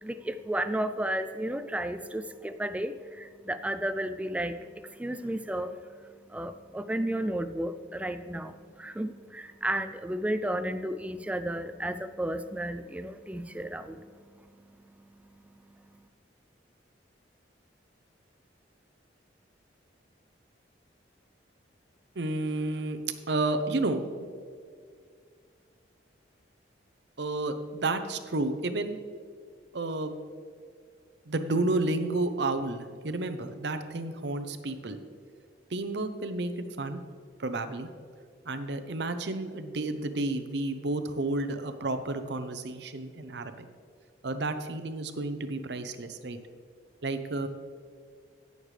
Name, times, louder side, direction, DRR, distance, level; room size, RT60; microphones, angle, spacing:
voice 1, 0.0-5.8 6.3-14.1, right 1 dB, 5° right, 11 dB, 0.3 m, -33 dB
voice 2, 22.2-23.0 23.3-24.1 27.2-29.0 29.7-30.1 31.3-35.0 35.7-37.0 37.4-37.9 38.5-43.7 44.2-46.4 47.0-47.5, right 2 dB, 65° right, 9 dB, 0.7 m, -31 dB
16.5 x 6.6 x 3.3 m, 2.1 s
head